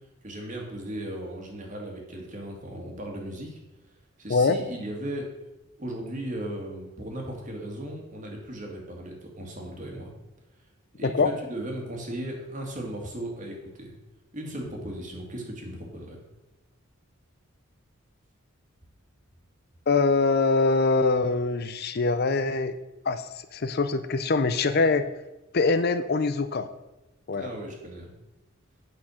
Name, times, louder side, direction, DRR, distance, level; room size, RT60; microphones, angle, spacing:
voice 1, 0.2-3.6 4.2-5.3 5.8-10.1 11.0-11.1 11.5-13.9 14.3-16.2 27.3-28.1, right 1 dB, 40° right, 1 dB, 2.2 m, -36 dB
voice 2, 19.9-22.7 23.0-25.0 25.5-26.7 27.3-27.5, left 3 dB, 50° left, 11 dB, 0.5 m, -23 dB
8.7 x 6.0 x 6.4 m, 1.0 s
head